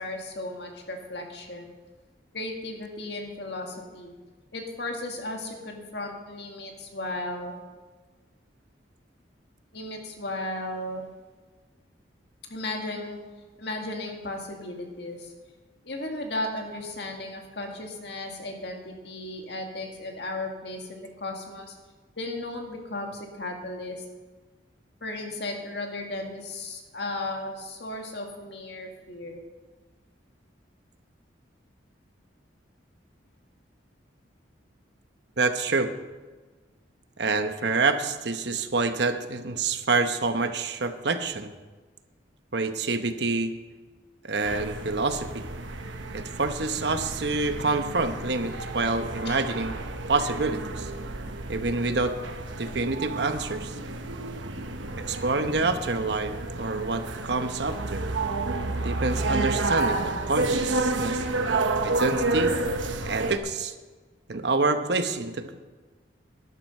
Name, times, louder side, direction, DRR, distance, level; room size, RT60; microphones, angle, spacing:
voice 1, 0.0-1.7 2.3-4.1 4.5-7.6 9.7-11.1 12.5-13.2 13.6-15.3 15.8-21.7 22.2-24.0 25.0-29.4 49.3-49.4, left 2 dB, 60° left, 2 dB, 2.0 m, -35 dB
voice 2, 35.4-35.9 37.2-41.5 42.5-43.5 44.2-45.4 46.1-49.8 50.1-50.9 51.5-52.1 52.6-53.7 55.1-58.0 58.8-61.3 61.8-62.5 63.0-63.7 64.3-65.6, right 3 dB, 65° right, 8 dB, 0.9 m, -27 dB
sound 1, 44.4-63.4, right 2 dB, 90° right, 1.1 m, -30 dB
12.0 x 11.0 x 5.5 m, 1.3 s
head